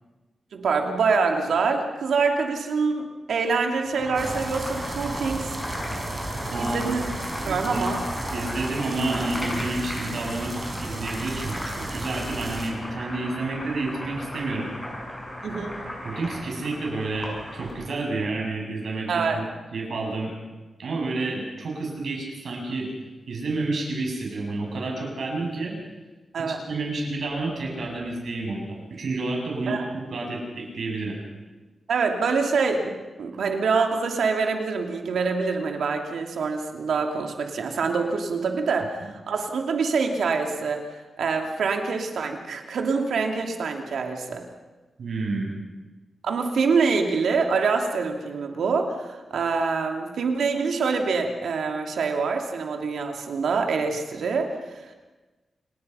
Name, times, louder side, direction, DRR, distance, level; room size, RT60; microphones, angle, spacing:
voice 1, 0.5-5.6 6.6-7.0 7.4-8.0 15.4-15.8 19.1-19.5 26.3-26.6 29.7-29.8 31.9-40.8 41.2-44.4 46.2-54.9, right 4 dB, 90° right, 3 dB, 2.8 m, -25 dB
Boiling, 3.8-17.9, left 1 dB, 15° left, 7.6 m, -35 dB
sound 1, 4.1-12.7, right 2 dB, 30° right, 4.5 m, -35 dB
voice 2, 6.5-7.0 7.4-7.9 8.3-10.5 10.8-14.7 16.0-19.4 19.7-20.3 20.8-22.9 23.3-25.7 26.7-29.8 30.1-31.2 45.0-45.5, right 2 dB, 70° right, 0 dB, 7.8 m, -30 dB
29.0 x 19.0 x 5.7 m, 1.2 s
wide cardioid pair, 115°, 0 cm